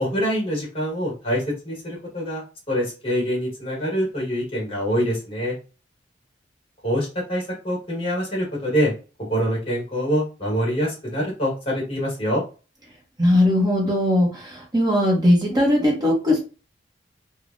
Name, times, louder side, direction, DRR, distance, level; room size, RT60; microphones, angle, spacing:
voice 1, 0.0-5.5 6.8-8.9 9.3-12.4, equal, 30° left, -3 dB, 1.4 m, -25 dB
voice 2, 13.2-16.4, left 1 dB, 20° right, -1 dB, 0.8 m, -19 dB
3.3 x 2.1 x 2.5 m, 0.34 s
head